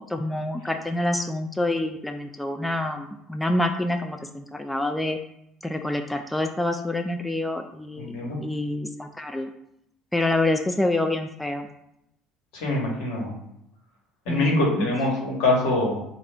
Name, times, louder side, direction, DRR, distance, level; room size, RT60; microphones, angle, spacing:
voice 1, 0.0-5.2 5.6-8.1 8.4-9.5 10.1-11.7 14.3-14.9, left 1 dB, 10° left, 5 dB, 0.3 m, -27 dB
voice 2, 8.0-8.4 12.5-13.3 14.2-16.0, left 2 dB, 70° left, -2 dB, 1.3 m, -24 dB
3.1 x 2.5 x 3.6 m, 0.78 s
hypercardioid pair, 65°, 0 cm